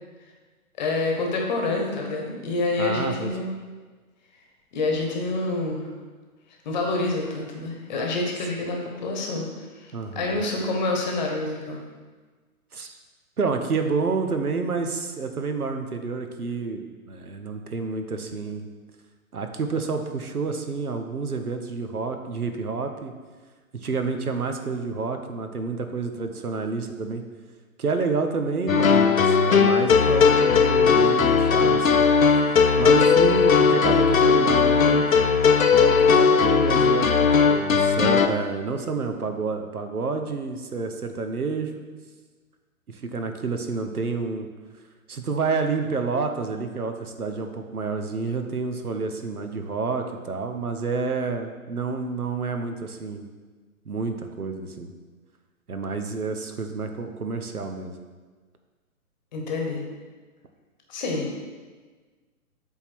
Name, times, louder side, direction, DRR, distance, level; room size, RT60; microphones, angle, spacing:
voice 1, 0.8-3.5 4.7-5.9 6.6-9.5 9.7-11.8 59.3-59.8 60.9-61.3, left 2 dB, 30° left, 0 dB, 1.2 m, -27 dB
voice 2, 2.8-3.3 9.9-10.4 12.7-13.0 13.4-18.7 19.3-23.1 23.7-27.2 27.8-32.0 32.8-35.1 35.8-41.9 42.9-44.5 45.1-53.3 53.8-54.9 55.7-58.0, right 4 dB, 75° right, 6 dB, 1.0 m, -29 dB
sound 1, 28.7-38.3, left 5 dB, 65° left, 0.7 m, -18 dB
8.0 x 3.7 x 6.1 m, 1.4 s
figure-of-eight pair, 130°, 45 cm